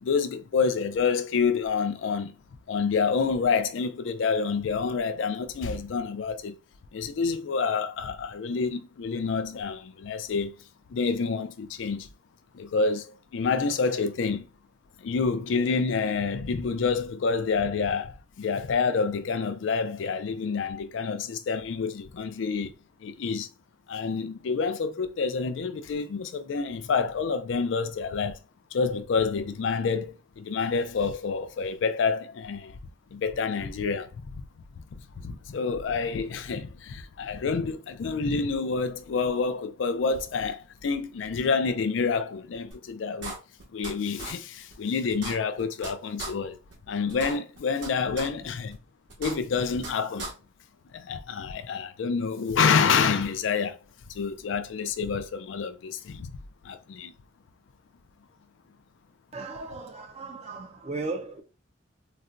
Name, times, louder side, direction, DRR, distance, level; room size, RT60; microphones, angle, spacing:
voice 1, 0.0-2.3 2.7-6.6 6.9-10.5 10.9-12.1 12.5-14.5 15.0-22.7 23.0-23.5 23.9-28.4 28.7-32.8 33.1-34.4 34.9-43.4 43.7-46.6 46.9-48.8 49.2-50.3 50.9-53.8 54.1-56.3 56.6-57.1, left 5 dB, 75° left, 0.4 m, -28 dB
sound 1, 42.7-42.8 43.2-43.9 44.2-44.3 44.7-44.8 45.1-45.9 46.2-46.3 46.7-46.8 47.1-47.9 48.2-48.3 48.7-48.8 49.1-49.9 50.2-50.3, right 3 dB, 70° right, 1.1 m, -36 dB
voice 2, 59.3-61.4, right 3 dB, 35° right, 0.4 m, -36 dB
4.0 x 2.1 x 2.4 m
head